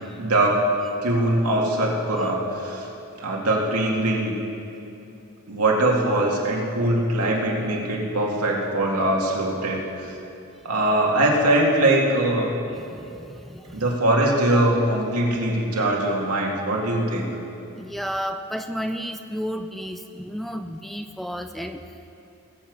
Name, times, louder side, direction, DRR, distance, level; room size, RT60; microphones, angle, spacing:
voice 1, 0.2-0.6 1.0-2.8 3.2-4.3 5.5-10.1 10.6-12.5 13.7-17.3, right 1 dB, 80° right, -2 dB, 2.2 m, -22 dB
voice 2, 12.7-13.9 17.8-22.2, equal, ahead, 7 dB, 0.4 m, -32 dB
20.5 x 8.0 x 5.4 m, 2.8 s
head